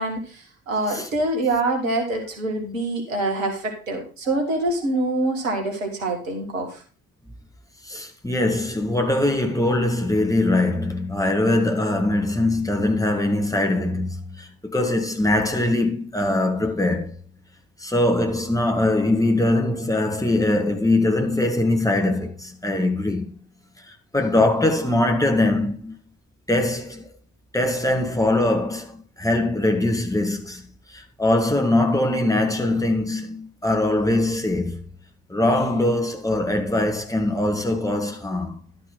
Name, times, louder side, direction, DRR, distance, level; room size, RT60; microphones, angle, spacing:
voice 1, 0.0-6.8, right 2 dB, 80° right, 2.0 m, -25 dB
voice 2, 7.8-17.1 17.8-23.3 23.9-25.9 26.5-27.1 27.5-30.6 30.9-34.8 35.3-38.6, left 1 dB, 10° left, 2.0 m, -22 dB
11.5 x 5.4 x 5.6 m
figure-of-eight pair, 45°, 39 cm